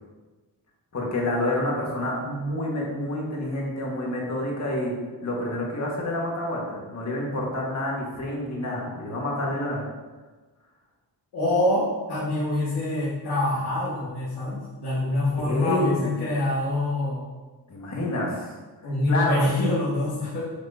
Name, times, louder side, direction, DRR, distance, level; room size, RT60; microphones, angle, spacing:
voice 1, 0.9-4.9 5.2-9.8 15.4-16.2 17.7-18.5 19.1-19.4, left 1 dB, 40° left, -3 dB, 1.8 m, -28 dB
voice 2, 11.3-17.2 18.8-20.4, left 1 dB, 70° left, -10 dB, 2.2 m, -25 dB
8.2 x 6.5 x 2.8 m, 1.3 s
wide cardioid pair, 165°, 40 cm